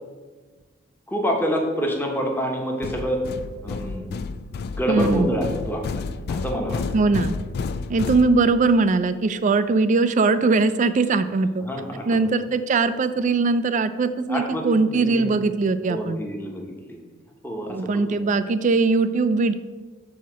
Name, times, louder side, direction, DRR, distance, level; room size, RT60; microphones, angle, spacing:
voice 1, 1.1-3.2 3.6-4.1 4.6-6.8 11.6-12.2 14.3-15.4 15.9-17.0 17.4-18.4, equal, 10° left, 0 dB, 1.0 m, -27 dB
sound 1, 2.8-8.8, left 4 dB, 55° left, 0.3 m, -31 dB
voice 2, 4.9-5.4 6.9-7.4 7.9-11.6 12.1-16.2 17.7-19.5, right 3 dB, 40° right, 12 dB, 0.3 m, -21 dB
8.1 x 2.9 x 6.2 m, 1.3 s
head